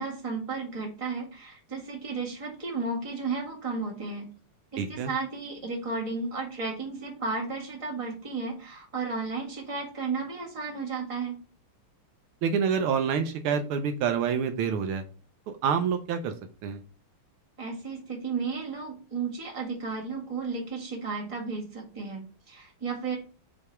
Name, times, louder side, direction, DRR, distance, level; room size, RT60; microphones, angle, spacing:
voice 1, 0.0-4.3 4.7-11.4 17.6-23.2, right 4 dB, 15° right, -2 dB, 1.6 m, -33 dB
voice 2, 4.8-5.1 12.4-15.0 15.5-16.3 16.6-16.8, right 6 dB, 80° right, 7 dB, 1.5 m, -27 dB
6.1 x 3.3 x 4.7 m, 0.37 s
omnidirectional pair, 2.4 m